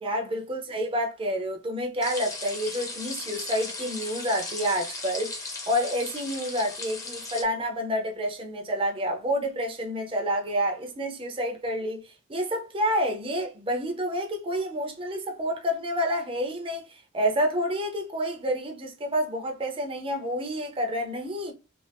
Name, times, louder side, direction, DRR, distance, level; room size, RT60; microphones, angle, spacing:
voice 1, 0.0-21.5, equal, 30° right, 0.6 m, -29 dB
sound 1, 2.0-7.4, left 3 dB, 15° left, 0.7 m, -37 dB
2.5 x 2.4 x 3.4 m
head